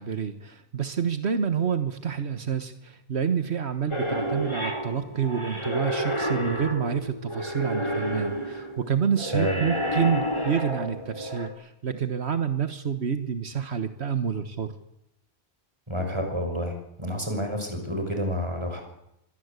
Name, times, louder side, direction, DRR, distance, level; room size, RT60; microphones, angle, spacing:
voice 1, 0.0-14.7, right 7 dB, 80° right, 10 dB, 1.6 m, -28 dB
sound 1, 3.9-11.5, equal, 25° left, 3.6 m, -30 dB
voice 2, 9.3-9.6 15.9-18.8, equal, 25° right, 4 dB, 6.2 m, -29 dB
25.5 x 21.0 x 8.2 m, 0.82 s
omnidirectional pair, 1.1 m